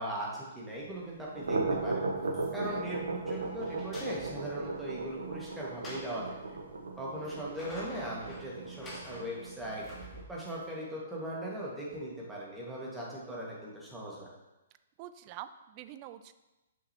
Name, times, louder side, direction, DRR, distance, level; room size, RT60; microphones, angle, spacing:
voice 1, 0.0-2.1 2.5-6.6 7.0-9.8 10.3-14.3, equal, 5° right, -6 dB, 1.6 m, -39 dB
sound 1, 1.2-10.2, right 3 dB, 65° right, 0.9 m, -36 dB
sound 2, 2.2-2.8 3.2-4.5 5.4-6.2 7.0-10.6, left 1 dB, 15° left, 1.5 m, -49 dB
voice 2, 15.0-16.3, right 12 dB, 30° right, 12 dB, 0.3 m, -46 dB
6.2 x 5.8 x 2.8 m, 1.0 s
figure-of-eight pair, 120°, 0 cm